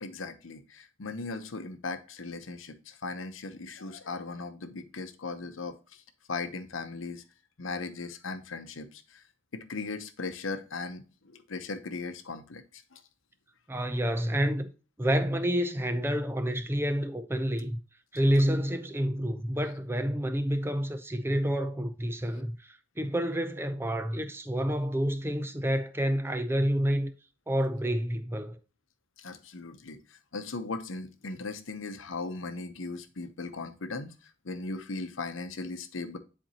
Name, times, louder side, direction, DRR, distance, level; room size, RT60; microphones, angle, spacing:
voice 1, 0.0-5.7 6.3-7.2 7.6-8.9 9.5-11.0 11.3-12.6 12.9-13.0 29.2-30.0 30.3-34.1 34.4-36.2, left 3 dB, 80° left, 0.9 m, -38 dB
voice 2, 13.7-14.7 15.0-17.8 18.1-27.1 27.5-28.6, equal, 10° right, 0.6 m, -28 dB
10.0 x 4.4 x 2.9 m
head